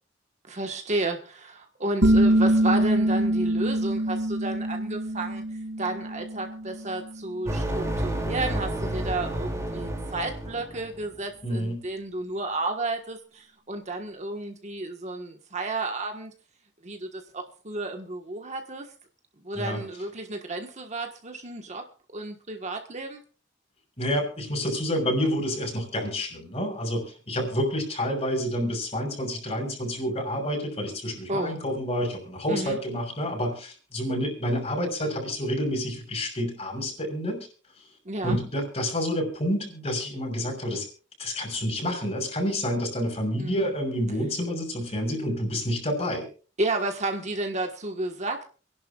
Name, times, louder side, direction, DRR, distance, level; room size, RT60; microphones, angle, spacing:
voice 1, 0.5-5.4 5.8-16.3 16.8-18.9 19.4-21.8 22.1-23.2 31.3-31.6 32.5-32.8 38.0-38.4 43.4-43.6 46.6-48.4, right 2 dB, 40° right, 4 dB, 1.5 m, -32 dB
sound 1, 2.0-7.4, right 1 dB, 80° right, 2.5 m, -24 dB
sound 2, 7.5-11.1, right 1 dB, 15° right, 2.7 m, -30 dB
voice 2, 11.4-11.8 19.5-19.8 24.0-37.5 38.2-40.9 41.2-46.2, equal, 35° left, 1 dB, 6.3 m, -28 dB
28.0 x 11.0 x 2.4 m, 0.37 s
head